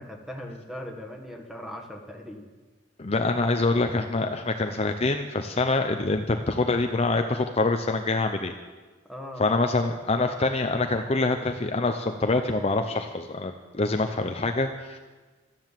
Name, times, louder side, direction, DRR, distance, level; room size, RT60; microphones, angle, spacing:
voice 1, 0.0-2.5 9.1-9.5, left 1 dB, ahead, 3 dB, 1.6 m, -39 dB
voice 2, 3.0-8.5 9.4-15.0, left 3 dB, 35° left, 5 dB, 0.7 m, -25 dB
13.5 x 10.5 x 7.5 m, 1.3 s
head